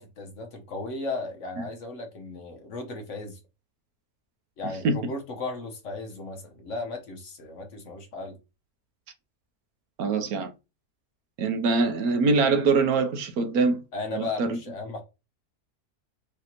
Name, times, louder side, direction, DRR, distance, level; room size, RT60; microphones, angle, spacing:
voice 1, 0.0-3.4 4.6-8.4 13.9-15.0, left 3 dB, 55° left, 1.1 m, -35 dB
voice 2, 10.0-10.5 11.4-13.8 14.2-14.6, right 4 dB, 70° right, 1.1 m, -23 dB
4.9 x 2.8 x 2.9 m
omnidirectional pair, 1.7 m